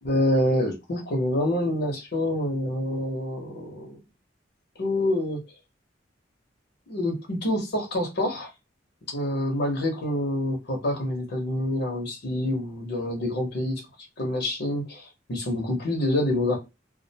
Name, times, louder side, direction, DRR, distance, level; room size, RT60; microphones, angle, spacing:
voice 1, 0.0-4.0 4.8-5.4 6.9-8.5 9.1-13.8 14.2-16.6, left 1 dB, 60° left, 2 dB, 0.8 m, -27 dB
2.4 x 2.1 x 2.7 m, 0.24 s
head